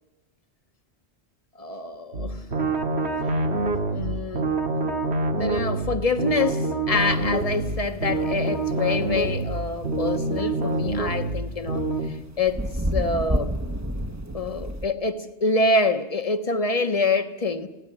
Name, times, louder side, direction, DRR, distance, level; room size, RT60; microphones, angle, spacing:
voice 1, 1.6-2.4 3.9-4.5 5.4-12.7 12.9-13.5 14.3-17.7, left 3 dB, 35° left, 1.3 m, -26 dB
sound 1, 2.1-12.1, right 2 dB, 70° right, 2.1 m, -26 dB
sound 2, 6.9-14.9, equal, 15° right, 1.1 m, -32 dB
22.5 x 17.0 x 9.9 m
omnidirectional pair, 1.1 m